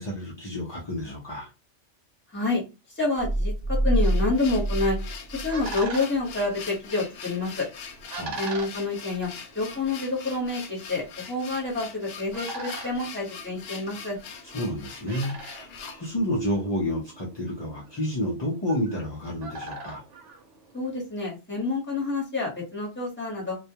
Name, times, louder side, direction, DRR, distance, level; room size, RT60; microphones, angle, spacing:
voice 1, 0.0-1.5 8.2-8.4 14.5-20.0, equal, 40° left, -5 dB, 0.4 m, -30 dB
voice 2, 2.3-2.6 2.9-5.0 5.3-7.7 8.4-9.3 9.5-14.2 20.7-23.6, left 3 dB, 10° left, -4 dB, 0.9 m, -28 dB
sound 1, 3.2-5.9, right 1 dB, 45° right, 0.8 m, -26 dB
sound 2, 3.9-16.1, left 6 dB, 65° left, 0.7 m, -42 dB
sound 3, 5.0-21.1, right 2 dB, 85° right, 1.0 m, -43 dB
2.3 x 2.2 x 2.7 m, 0.28 s
omnidirectional pair, 1.2 m